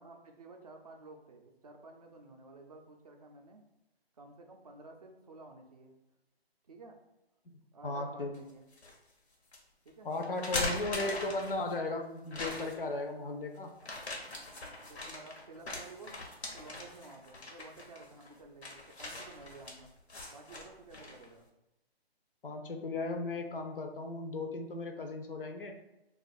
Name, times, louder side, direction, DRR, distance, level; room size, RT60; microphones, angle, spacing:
voice 1, 0.0-3.6 4.2-6.0 6.7-7.0 7.7-8.7 9.8-10.1 10.6-11.3 13.2-13.4 13.8-14.3 14.9-16.1 16.5-19.9 20.3-21.5, right 3 dB, 40° right, 3 dB, 0.4 m, -52 dB
voice 2, 7.8-8.4 10.0-13.7 22.4-25.8, left 2 dB, 55° left, 5 dB, 0.5 m, -36 dB
sound 1, 8.3-8.9 9.5-9.6 10.2-11.8 12.3-12.9 13.8-21.3, left 2 dB, 90° left, 1.0 m, -41 dB
2.4 x 2.4 x 4.0 m, 0.92 s
hypercardioid pair, 160°, 32 cm